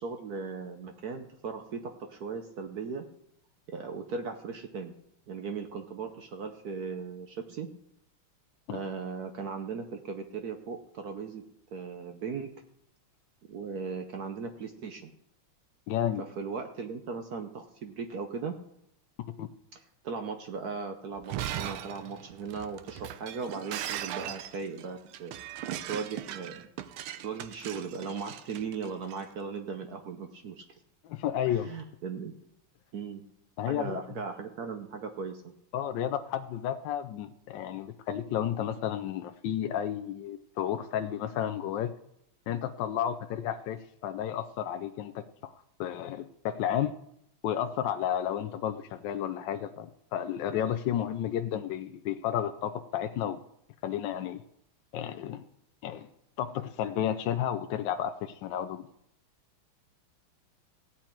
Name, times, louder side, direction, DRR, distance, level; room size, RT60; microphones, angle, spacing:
voice 1, 0.0-3.0 3.7-4.9 5.3-7.7 8.7-11.4 11.7-12.5 13.5-15.1 16.2-18.6 19.7-25.3 25.9-26.7 27.2-30.8 31.5-32.3 32.9-33.3 33.7-35.5, right 5 dB, 65° right, 6 dB, 1.0 m, -38 dB
voice 2, 15.9-16.2 19.4-19.5 31.0-31.7 33.6-34.0 35.7-41.9 42.5-45.5 45.8-46.9 47.4-53.4 53.8-54.4 54.9-55.4 55.8-56.1 56.4-58.9, left 10 dB, 75° left, 9 dB, 1.1 m, -32 dB
Shatter, 21.2-29.2, right 11 dB, 80° right, 1.5 m, -39 dB
16.0 x 8.6 x 4.5 m, 0.76 s
omnidirectional pair, 2.4 m